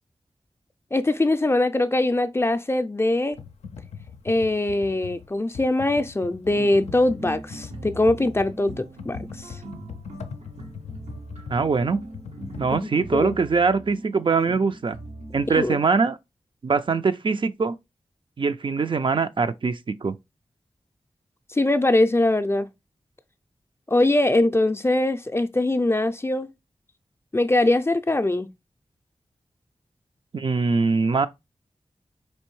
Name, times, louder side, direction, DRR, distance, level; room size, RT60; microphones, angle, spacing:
voice 1, 0.9-3.4 4.2-9.6 12.7-13.4 15.5-15.8 21.5-22.7 23.9-26.5 27.3-28.5, left 2 dB, 25° left, 0.4 m, -22 dB
Computer keyboard, 3.3-12.8, left 6 dB, 90° left, 0.4 m, -40 dB
sound 1, 6.4-15.7, right 2 dB, 85° right, 0.7 m, -41 dB
voice 2, 11.5-12.0 12.6-15.0 15.3-16.2 16.6-17.7 18.4-20.1 30.3-31.3, right 4 dB, 50° right, 0.3 m, -22 dB
4.3 x 2.7 x 3.0 m
cardioid pair, 45°, 11 cm